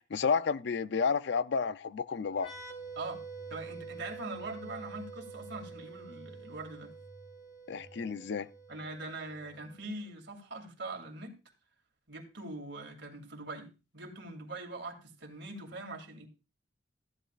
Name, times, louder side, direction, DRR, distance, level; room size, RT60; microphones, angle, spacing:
voice 1, 0.0-2.5 7.7-8.5, left 5 dB, 65° left, 0.5 m, -31 dB
sound 1, 2.3-9.6, right 1 dB, 90° left, 7.5 m, -55 dB
sound 2, 2.3-9.8, right 4 dB, 35° left, 3.2 m, -48 dB
voice 2, 3.5-6.9 8.7-11.4 12.1-16.3, right 2 dB, 65° right, 2.5 m, -42 dB
15.0 x 11.0 x 2.5 m
head